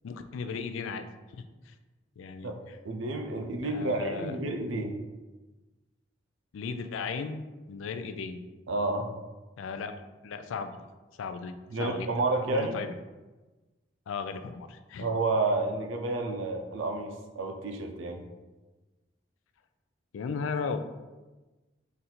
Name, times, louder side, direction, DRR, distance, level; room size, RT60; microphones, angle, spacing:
voice 1, 0.0-1.0 1.3-1.7 2.2-2.8 3.6-4.3 6.5-8.4 9.6-10.8 11.2-12.1 12.5-12.9 14.1-15.1 20.1-20.8, left 5 dB, 85° left, 9 dB, 0.3 m, -36 dB
voice 2, 2.8-5.0 8.7-9.1 11.7-12.8 15.0-18.2, right 2 dB, 85° right, 4 dB, 0.5 m, -30 dB
3.9 x 2.6 x 4.3 m, 1.2 s
head